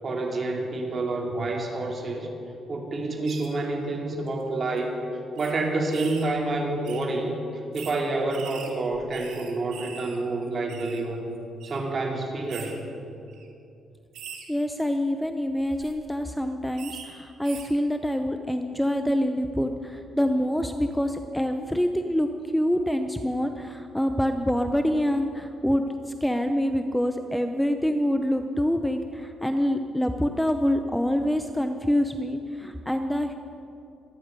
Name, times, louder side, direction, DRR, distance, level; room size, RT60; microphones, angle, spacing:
voice 1, 0.0-2.3 2.7-5.0 5.4-7.4 7.7-11.3 11.6-12.8, right 2 dB, 40° right, 1 dB, 2.8 m, -28 dB
sound 1, 3.3-3.5 4.3-4.4 4.7-4.8 5.4-5.5 5.9-6.3 6.8-7.1 7.7-8.0 8.3-10.2 10.4-11.0 11.6-11.8 12.5-12.7 13.3-13.5 14.1-14.4 15.6-15.9 16.8-17.0 17.4-17.7, right 7 dB, 80° right, 2.3 m, -42 dB
voice 2, 14.5-25.8 26.2-33.3, equal, 5° left, 7 dB, 0.7 m, -26 dB
25.0 x 9.9 x 5.3 m, 2.6 s
cardioid pair, 90°, 0 cm